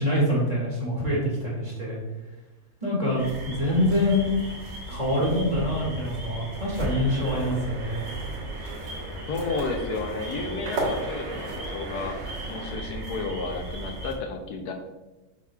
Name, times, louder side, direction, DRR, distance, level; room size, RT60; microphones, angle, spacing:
voice 1, 0.0-2.0 2.8-4.3 4.9-8.0, left 1 dB, 25° right, -5 dB, 2.1 m, -25 dB
sound 1, 3.2-14.1, right 2 dB, 80° right, 2.0 m, -35 dB
sound 2, 6.8-12.8, right 2 dB, 50° right, 1.5 m, -39 dB
voice 2, 9.3-12.2 12.5-14.7, left 4 dB, 80° left, 4 dB, 1.3 m, -32 dB
6.9 x 5.9 x 2.4 m, 1.1 s
omnidirectional pair, 1.7 m